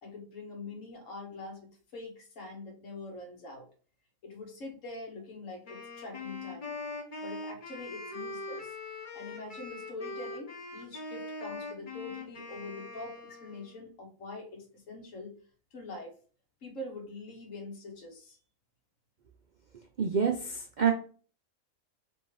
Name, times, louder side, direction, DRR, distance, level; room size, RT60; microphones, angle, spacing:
voice 1, 0.0-3.7 4.2-6.7 7.2-8.7 9.1-15.4 15.7-16.1 16.6-18.4, left 2 dB, 65° left, 2 dB, 1.4 m, -44 dB
Wind instrument woodwind instrument, 5.6-13.8, left 3 dB, 35° left, 1.1 m, -42 dB
voice 2, 20.0-20.9, right 7 dB, 65° right, 3 dB, 0.4 m, -27 dB
5.2 x 2.8 x 3.1 m, 0.41 s
omnidirectional pair, 1.5 m